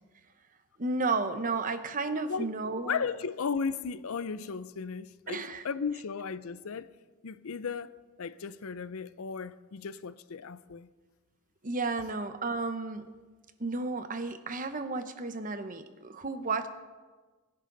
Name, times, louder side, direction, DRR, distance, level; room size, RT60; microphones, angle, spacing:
voice 1, 0.8-3.1 5.3-5.6 11.6-13.0 13.6-16.7, right 3 dB, 40° right, 0.9 m, -32 dB
voice 2, 2.8-6.9 7.2-7.9 8.2-10.9, left 5 dB, 80° left, 0.5 m, -35 dB
22.5 x 10.5 x 4.0 m
head